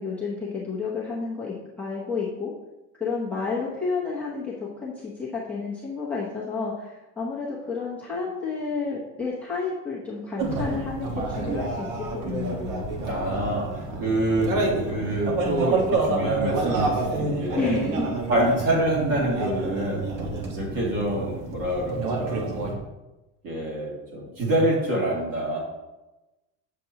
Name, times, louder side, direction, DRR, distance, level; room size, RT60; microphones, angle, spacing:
voice 1, 0.0-2.5 3.0-12.8 17.5-18.1, left 4 dB, 5° left, -9 dB, 0.8 m, -31 dB
sound 1, 10.4-22.8, right 2 dB, 60° right, 1.4 m, -28 dB
voice 2, 13.0-14.5 14.9-17.8 18.3-20.1 20.6-22.6 23.4-25.6, right 1 dB, 40° right, -3 dB, 2.5 m, -26 dB
7.6 x 6.7 x 2.9 m, 1.1 s
cardioid pair, 180°, 34 cm